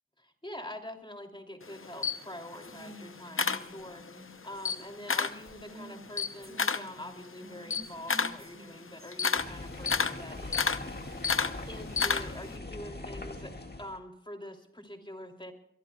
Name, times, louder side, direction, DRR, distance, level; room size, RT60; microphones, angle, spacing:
voice 1, 0.2-10.8 11.7-15.5, left 1 dB, 25° left, 3 dB, 3.0 m, -45 dB
Camera, 1.6-4.2 4.5-5.4 5.8-12.5, left 5 dB, 75° left, 0.8 m, -31 dB
Female speech woman speaking, 2.6-6.1 6.4-9.1, right 1 dB, 45° right, 7.4 m, -51 dB
sound 1, 9.4-14.0, left 2 dB, 50° left, 2.0 m, -41 dB
24.0 x 22.0 x 2.4 m, 0.72 s
wide cardioid pair, 40°, 21 cm